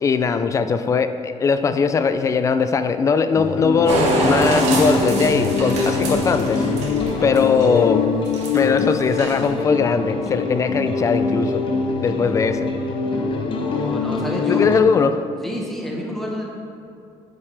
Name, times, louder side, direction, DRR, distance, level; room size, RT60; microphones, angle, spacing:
voice 1, 0.0-6.6 7.2-8.1 8.5-11.6 12.0-12.7 14.5-15.2, left 5 dB, 25° left, 10 dB, 0.4 m, -20 dB
sound 1, 3.4-14.8, left 4 dB, 45° left, 0.8 m, -23 dB
sound 2, 3.9-7.8 8.2-8.8 9.1-9.5, right 2 dB, 65° right, 1.9 m, -24 dB
voice 2, 7.1-7.4 13.7-14.7 15.4-16.5, equal, ahead, -2 dB, 1.1 m, -30 dB
9.1 x 8.8 x 3.4 m, 2.6 s
cardioid pair, 165°, 12 cm